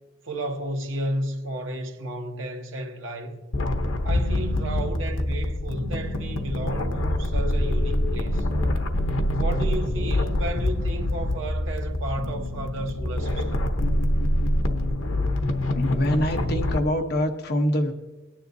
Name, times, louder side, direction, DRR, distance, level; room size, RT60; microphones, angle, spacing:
voice 1, 0.2-3.4 4.0-8.5 9.3-13.6, right 1 dB, 85° right, 1.1 m, -33 dB
sound 1, 3.5-16.8, left 1 dB, 85° left, 1.0 m, -25 dB
voice 2, 15.7-17.9, equal, 55° left, 1.0 m, -25 dB
19.5 x 10.0 x 2.7 m
head